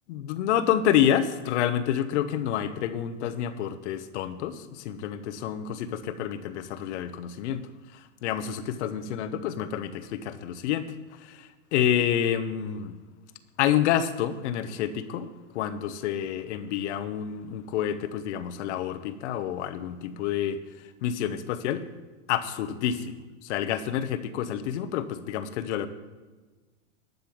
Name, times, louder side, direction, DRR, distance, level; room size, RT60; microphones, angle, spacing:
voice 1, 0.1-7.6 7.9-10.9 11.2-12.9 13.6-15.3 15.5-20.6 21.0-21.8 22.3-25.9, left 10 dB, 60° left, 11 dB, 1.2 m, -28 dB
12.0 x 5.5 x 8.6 m, 1.3 s
hypercardioid pair, 105°, 39 cm